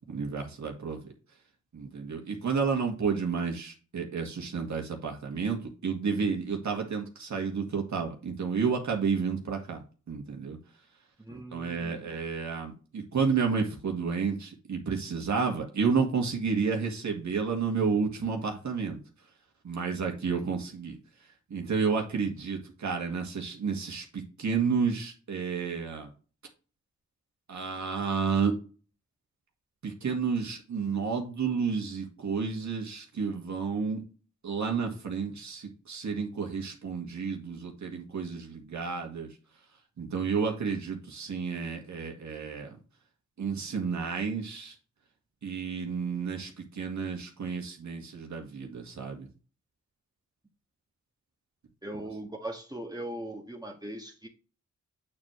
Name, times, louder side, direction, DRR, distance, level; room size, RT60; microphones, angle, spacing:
voice 1, 0.1-1.1 1.7-9.8 10.1-10.6 11.3-19.0 19.6-21.0 21.5-26.1 27.5-28.5 29.8-34.0 34.4-39.3 40.0-42.8 43.4-44.7 45.4-49.3, right 5 dB, 70° right, 2 dB, 2.0 m, -31 dB
voice 2, 11.2-12.1 51.8-54.3, right 1 dB, 15° right, 0 dB, 1.6 m, -39 dB
8.4 x 4.7 x 3.2 m, 0.35 s
cardioid pair, 55°, 30 cm